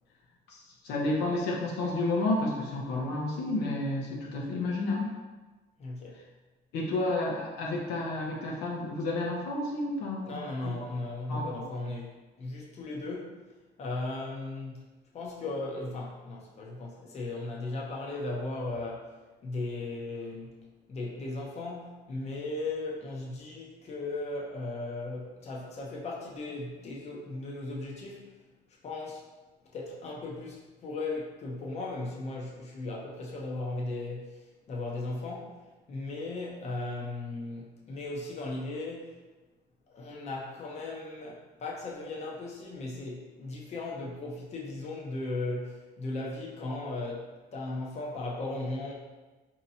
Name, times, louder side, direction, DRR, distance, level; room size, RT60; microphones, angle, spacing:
voice 1, 0.8-5.1 6.7-10.4 11.3-11.5, left 2 dB, 85° left, -2 dB, 0.8 m, -30 dB
voice 2, 5.8-6.2 10.2-13.4 13.8-14.8 15.1-20.6 20.9-28.3 28.8-29.3 29.7-35.6 35.9-39.2 39.9-48.9, left 2 dB, 40° left, -3 dB, 0.7 m, -37 dB
4.3 x 2.8 x 2.7 m, 1.2 s
cardioid pair, 110°, 17 cm